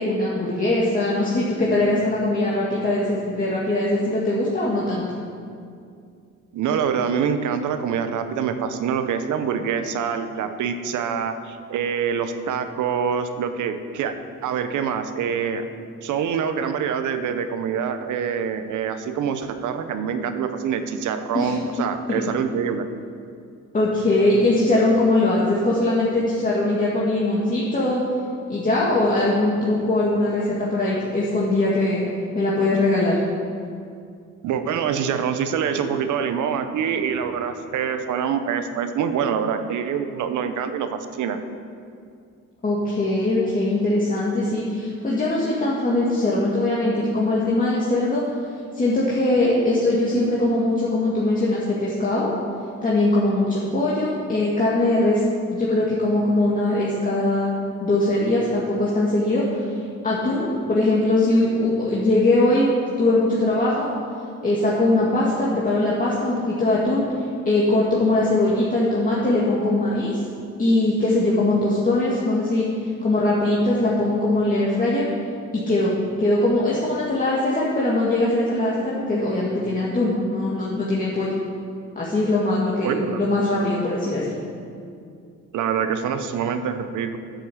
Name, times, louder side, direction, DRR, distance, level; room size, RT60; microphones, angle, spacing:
voice 1, 0.0-5.0 21.3-21.5 22.1-22.2 23.7-28.0 28.5-32.0 32.3-33.2 42.6-48.2 48.7-52.3 52.8-55.2 55.5-57.5 57.8-59.4 60.0-62.7 63.0-63.9 64.4-67.1 67.5-70.2 70.6-72.6 73.0-75.1 75.5-81.3 82.0-84.4, left 2 dB, 25° left, -6 dB, 2.1 m, -21 dB
voice 2, 6.5-14.1 14.4-15.6 16.0-22.8 34.4-41.4 82.8-83.3 85.5-87.2, right 7 dB, 80° right, 9 dB, 0.9 m, -25 dB
8.9 x 8.0 x 7.3 m, 2.3 s
cardioid pair, 90°, 30 cm